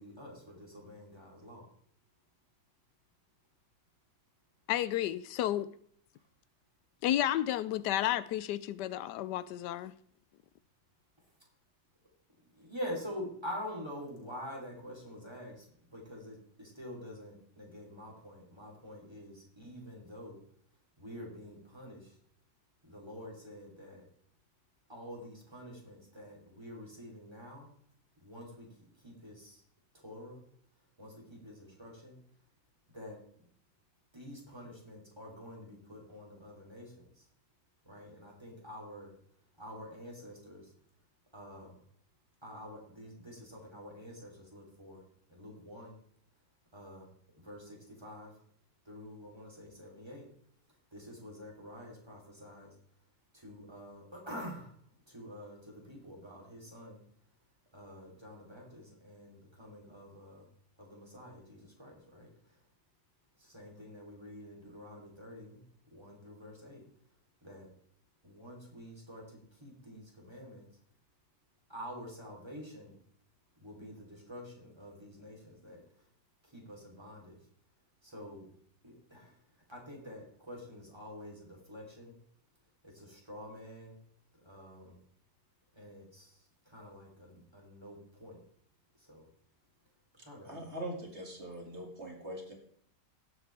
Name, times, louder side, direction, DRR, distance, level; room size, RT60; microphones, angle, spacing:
voice 1, 0.0-1.6 6.2-6.3 11.2-11.3 12.5-20.4 21.0-22.2 22.8-24.0 24.9-27.7 28.2-29.6 29.9-30.4 31.0-32.2 32.9-33.2 34.1-37.3 37.8-39.1 39.6-40.7 41.3-41.8 42.4-45.0 45.3-46.0 46.7-47.1 47.4-48.4 48.8-50.3 50.9-52.7 53.3-54.7 55.1-57.0 57.7-60.5 60.8-62.6 63.4-65.6 65.9-66.9 67.4-67.7 68.2-70.7 71.7-73.0 73.6-76.0 76.4-77.4 78.0-78.5 78.8-79.4 79.7-82.2 82.8-84.0 84.4-85.0 85.7-88.4 89.0-89.3 90.2-90.6, equal, 15° right, 3.2 m, -47 dB
voice 2, 4.7-5.7 7.0-9.9, left 12 dB, 90° left, 1.2 m, -31 dB
voice 3, 90.4-92.5, right 1 dB, 40° right, 2.5 m, -42 dB
18.0 x 8.0 x 3.4 m
omnidirectional pair, 1.7 m